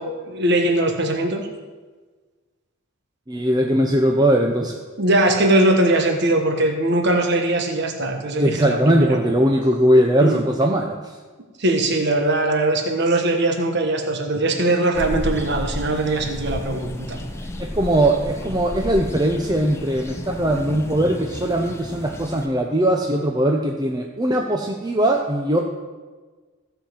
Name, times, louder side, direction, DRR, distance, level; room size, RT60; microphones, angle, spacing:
voice 1, 0.0-1.5 5.0-9.2 10.2-10.4 11.6-17.2, right 1 dB, 55° right, 3 dB, 1.4 m, -20 dB
voice 2, 3.3-4.8 8.4-11.1 17.6-25.6, right 1 dB, 20° right, 1 dB, 0.8 m, -20 dB
sound 1, 14.9-22.5, left 1 dB, 15° left, 0.9 m, -32 dB
15.5 x 5.8 x 7.4 m, 1.4 s
head